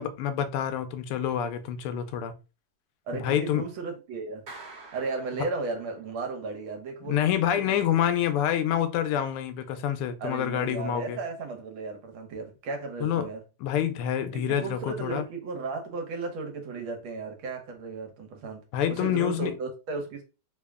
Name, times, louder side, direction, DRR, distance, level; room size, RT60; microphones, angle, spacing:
voice 1, 0.0-2.3 3.1-3.6 7.0-11.2 13.0-13.3 13.6-15.2 18.7-19.5, left 10 dB, 85° left, 1.5 m, -27 dB
voice 2, 3.1-4.4 4.9-7.2 7.6-7.8 10.2-13.4 14.3-18.6 19.0-20.2, right 3 dB, 70° right, 1.7 m, -35 dB
Clapping, 4.5-6.2, right 3 dB, 50° right, 1.3 m, -47 dB
3.9 x 2.2 x 3.4 m
omnidirectional pair, 2.4 m